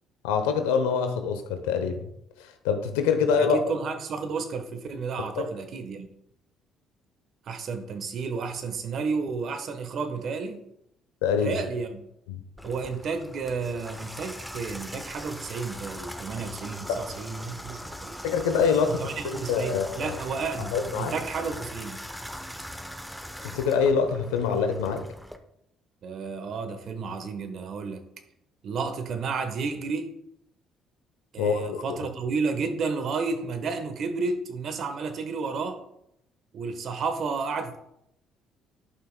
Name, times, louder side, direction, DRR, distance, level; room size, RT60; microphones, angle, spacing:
voice 1, 0.2-2.0 2.6-3.6 11.2-11.6 12.3-12.4 16.9-17.0 18.2-20.2 20.7-21.1 23.5-25.0 31.4-32.0, left 6 dB, 85° left, 7 dB, 0.8 m, -25 dB
voice 2, 3.2-6.1 7.5-10.7 11.4-12.0 12.6-18.2 18.9-22.0 26.0-28.1 28.6-30.1 31.3-35.8 36.5-37.8, right 4 dB, 60° right, 8 dB, 1.1 m, -32 dB
Water tap faucet / Bathtub (filling or washing), 12.6-25.4, equal, ahead, 0.8 m, -40 dB
11.0 x 5.7 x 2.2 m, 0.78 s
hypercardioid pair, 60°, 0 cm